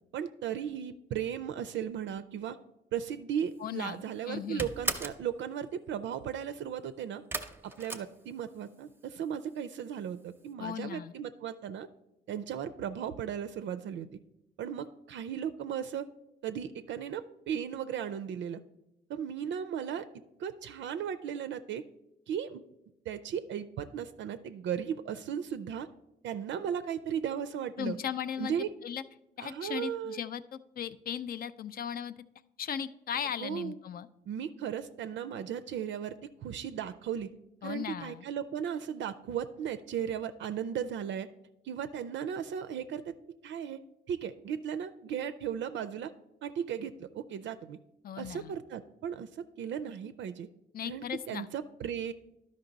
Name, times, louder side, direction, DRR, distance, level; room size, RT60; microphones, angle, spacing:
voice 1, 0.1-2.6 2.9-7.2 7.6-11.9 12.3-14.1 14.6-16.1 16.4-18.6 19.1-20.1 20.4-21.8 22.3-22.6 23.1-25.9 26.2-28.0 28.4-28.7 29.4-30.2 33.4-33.8 34.3-36.2 36.4-37.3 37.6-41.3 41.6-43.2 43.4-43.8 44.1-46.1 46.4-47.8 48.2-50.5 50.8-52.1, right 8 dB, 70° right, 10 dB, 0.4 m, -36 dB
voice 2, 3.6-4.7 10.6-11.1 27.8-28.5 28.8-29.0 29.4-32.1 32.6-34.1 37.6-38.2 48.0-48.5 50.7-51.5, left 8 dB, 50° left, 13 dB, 0.4 m, -37 dB
sound 1, 3.6-4.0 4.2-5.3 7.3-8.8 9.1-9.7 10.0-10.1 10.4-10.5, right 2 dB, 10° right, 0.6 m, -37 dB
11.5 x 5.3 x 3.9 m, 0.90 s
cardioid pair, 90°, 20 cm